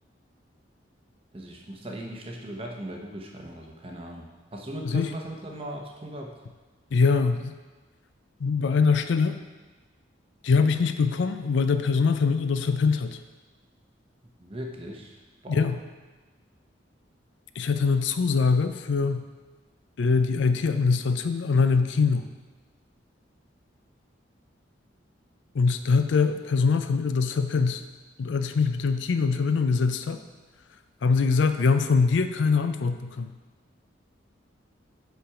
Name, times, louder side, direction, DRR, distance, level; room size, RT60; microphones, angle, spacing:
voice 1, 1.3-6.3 14.4-15.7, right 1 dB, 30° right, 1 dB, 0.8 m, -39 dB
voice 2, 6.9-7.5 8.4-9.4 10.4-13.2 15.5-15.8 17.6-19.3 20.0-22.3 25.5-27.8 28.2-30.2 31.0-33.3, left 4 dB, 70° left, 9 dB, 0.4 m, -23 dB
5.8 x 5.7 x 4.9 m, 1.3 s
head